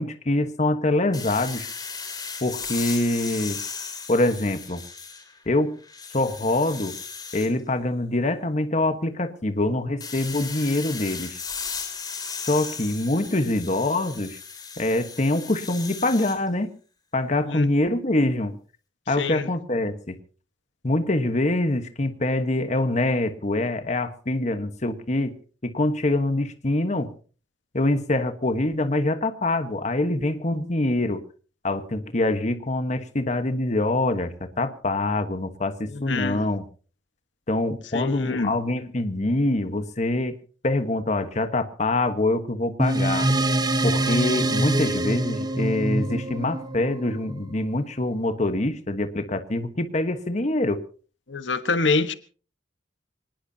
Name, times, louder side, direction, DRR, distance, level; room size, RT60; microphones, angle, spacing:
voice 1, 0.0-1.7 2.4-3.6 4.1-4.8 5.5-5.8 6.1-7.0 7.3-11.4 12.5-14.4 14.8-16.7 17.1-18.6 19.1-20.2 20.8-27.1 27.7-31.3 31.6-36.6 37.5-40.4 40.6-43.3 43.8-50.8, left 2 dB, 40° left, 9 dB, 1.3 m, -25 dB
sound 1, 1.1-5.4 5.8-7.5 10.0-16.4, left 5 dB, 20° left, 3.3 m, -36 dB
voice 2, 36.0-36.4 37.9-38.5 51.3-52.1, left 3 dB, 90° left, 11 dB, 1.3 m, -25 dB
sound 2, 42.8-47.6, right 1 dB, 25° right, 1.1 m, -24 dB
24.0 x 19.5 x 2.8 m, 0.39 s
head